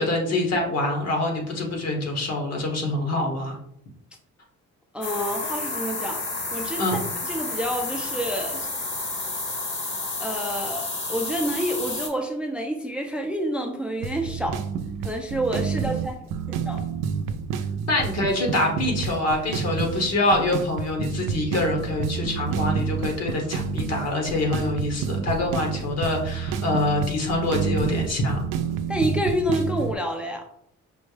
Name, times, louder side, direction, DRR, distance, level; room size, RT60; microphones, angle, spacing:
voice 1, 0.0-3.6 6.8-7.0 17.9-28.4, left 2 dB, 60° left, 2 dB, 1.3 m, -25 dB
voice 2, 4.9-6.2 6.5-6.8 7.2-8.7 10.2-14.6 15.0-16.2 16.5-16.8 28.9-30.4, equal, 5° right, 3 dB, 0.4 m, -28 dB
sound 1, 5.0-12.1, left 3 dB, 40° left, 1.1 m, -30 dB
sound 2, 14.0-29.9, right 6 dB, 85° right, 0.4 m, -29 dB
5.3 x 2.1 x 3.3 m, 0.71 s
cardioid pair, 90°, 30 cm